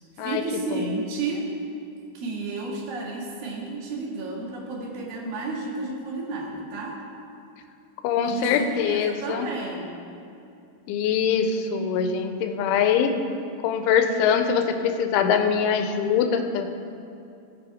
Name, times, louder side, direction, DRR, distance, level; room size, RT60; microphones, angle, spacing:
voice 1, 0.2-1.4 2.1-6.9 8.2-9.9, right 3 dB, 55° right, -4 dB, 3.3 m, -32 dB
voice 2, 8.0-9.5 10.9-13.1 13.6-16.7, left 7 dB, 85° left, 7 dB, 3.1 m, -23 dB
15.5 x 7.1 x 4.9 m, 2.6 s
omnidirectional pair, 5.4 m